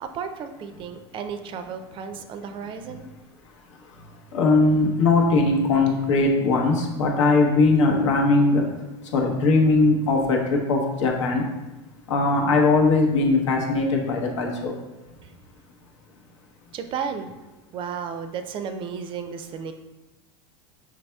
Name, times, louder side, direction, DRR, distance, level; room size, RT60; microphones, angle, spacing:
voice 1, 0.0-3.1 15.2-15.3 16.7-17.3 17.7-19.7, right 6 dB, 35° right, 8 dB, 0.4 m, -33 dB
voice 2, 4.3-8.6 9.1-11.4 12.1-14.7, left 3 dB, 85° left, 1 dB, 0.9 m, -20 dB
4.7 x 4.1 x 2.3 m, 1.1 s
supercardioid pair, 120°, 15 cm